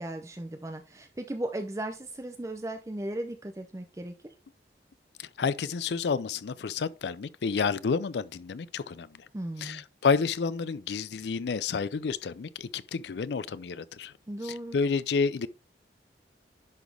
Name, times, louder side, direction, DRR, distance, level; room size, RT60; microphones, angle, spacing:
voice 1, 0.0-4.3 9.3-9.8 14.3-14.8, right 1 dB, 15° right, 0.5 m, -36 dB
voice 2, 5.2-9.3 9.6-14.1 14.4-15.5, left 5 dB, 75° left, 0.4 m, -30 dB
10.5 x 4.1 x 3.3 m
head